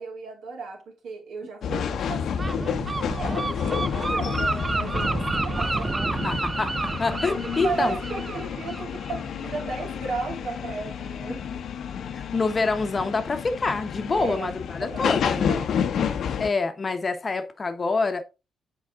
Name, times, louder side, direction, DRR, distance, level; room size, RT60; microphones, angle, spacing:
voice 1, 0.0-2.9 3.2-5.9 7.4-11.6 14.1-16.1, right 4 dB, 75° right, 2.7 m, -35 dB
sound 1, 1.6-16.5, left 7 dB, 70° left, 0.7 m, -30 dB
Gull seagull, 2.4-9.9, right 3 dB, 20° right, 0.4 m, -30 dB
voice 2, 6.2-8.0 12.1-15.6 16.4-18.2, left 3 dB, 30° left, 0.9 m, -26 dB
7.4 x 4.7 x 3.6 m
cardioid pair, 105°, 0 cm